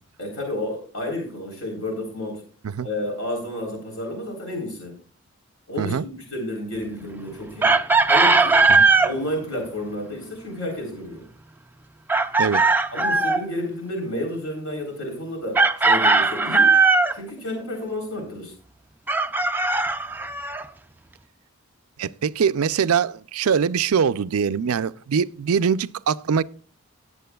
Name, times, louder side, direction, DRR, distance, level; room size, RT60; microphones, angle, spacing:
voice 1, 0.2-2.4 2.8-5.0 5.7-7.8 8.1-8.7 9.0-11.3 12.9-16.8 17.1-18.5, left 1 dB, 70° left, 3.7 m, -31 dB
Chicken rooster, 7.6-9.1 12.1-13.4 15.5-17.2 19.1-20.6, right 3 dB, 10° right, 0.3 m, -18 dB
voice 2, 22.0-26.4, right 6 dB, 80° right, 0.4 m, -23 dB
18.0 x 8.4 x 2.3 m
head